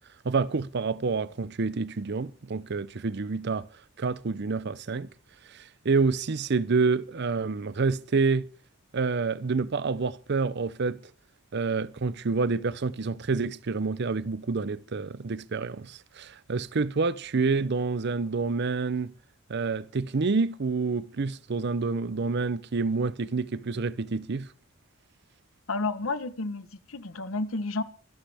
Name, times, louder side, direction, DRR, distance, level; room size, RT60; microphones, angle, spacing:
voice 1, 0.2-3.7 4.0-5.1 5.5-8.5 8.9-11.0 11.5-19.1 19.5-24.5, right 4 dB, 55° right, 0.6 m, -28 dB
voice 2, 25.7-27.8, left 3 dB, 85° left, 1.1 m, -31 dB
24.5 x 11.5 x 3.5 m
head